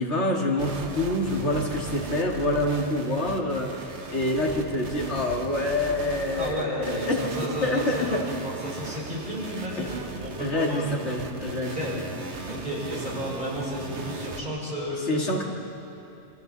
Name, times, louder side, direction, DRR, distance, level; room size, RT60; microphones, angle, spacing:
voice 1, 0.0-8.2 9.8-9.9 10.4-11.8 15.1-15.4, left 1 dB, 80° left, -1 dB, 2.5 m, -27 dB
sound 1, 0.6-14.4, right 2 dB, 75° right, 1.6 m, -37 dB
voice 2, 6.3-10.9 11.6-12.1 12.5-15.3, equal, 40° right, -5 dB, 5.9 m, -33 dB
28.0 x 24.5 x 4.0 m, 2.9 s
omnidirectional pair, 1.2 m